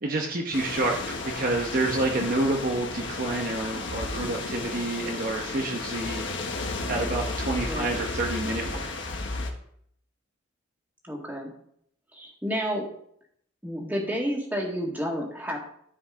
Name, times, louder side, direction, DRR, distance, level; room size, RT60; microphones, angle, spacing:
voice 1, 0.0-6.2 6.9-8.9, right 2 dB, 45° right, 1 dB, 1.0 m, -28 dB
sound 1, 0.5-9.5, left 3 dB, 60° left, 1.3 m, -33 dB
voice 2, 7.6-7.9 11.0-11.5 12.1-12.8 13.6-15.6, equal, 10° right, -1 dB, 1.9 m, -30 dB
13.5 x 5.3 x 3.8 m, 0.68 s
head